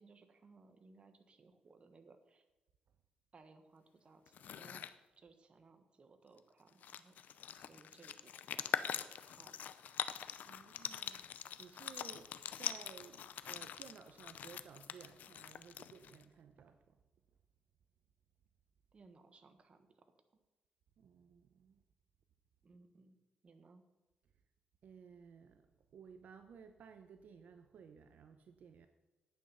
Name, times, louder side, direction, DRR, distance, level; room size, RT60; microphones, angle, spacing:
voice 1, 0.0-2.4 3.3-4.9 5.2-9.6 10.9-11.0 18.9-20.1 22.6-23.2 23.4-23.8, right 3 dB, 40° right, 8 dB, 1.3 m, -63 dB
sound 1, 4.3-4.9 6.4-6.5 6.7-16.2, left 9 dB, 75° left, 0.6 m, -43 dB
voice 2, 10.4-11.2 11.6-17.0 21.0-21.8 24.8-25.7 25.9-28.9, right 6 dB, 70° right, 8 dB, 0.7 m, -57 dB
10.5 x 8.7 x 5.6 m, 1.1 s
cardioid pair, 105°, 3 cm